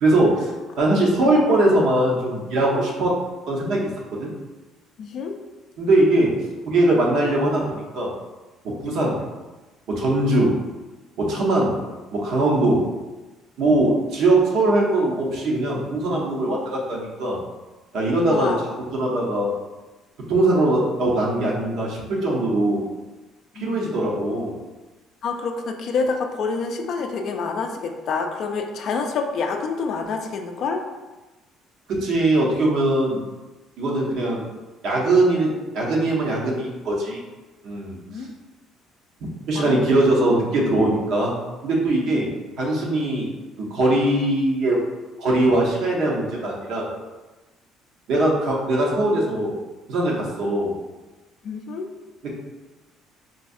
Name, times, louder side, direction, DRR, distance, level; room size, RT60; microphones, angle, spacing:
voice 1, 0.0-0.5 0.8-3.2 3.5-4.3 5.8-6.4 6.7-8.1 8.8-9.2 9.9-10.5 11.2-11.7 12.1-12.8 13.6-17.4 17.9-18.5 18.9-19.5 20.3-22.8 23.6-24.5 31.9-33.2 33.8-34.5 34.8-37.2 37.6-38.0 39.5-41.4 41.6-42.3 42.6-43.3 43.6-44.8 45.2-46.9 48.1-49.5 49.9-50.7 52.2-52.3, right 1 dB, 60° right, -2 dB, 0.8 m, -21 dB
voice 2, 5.0-5.4 18.3-18.6 23.6-24.1 25.2-30.8 38.1-38.3 39.5-39.9 42.1-42.3 51.4-51.9, left 4 dB, 55° left, 4 dB, 0.3 m, -27 dB
3.9 x 2.4 x 2.6 m, 1.2 s
cardioid pair, 135°, 0 cm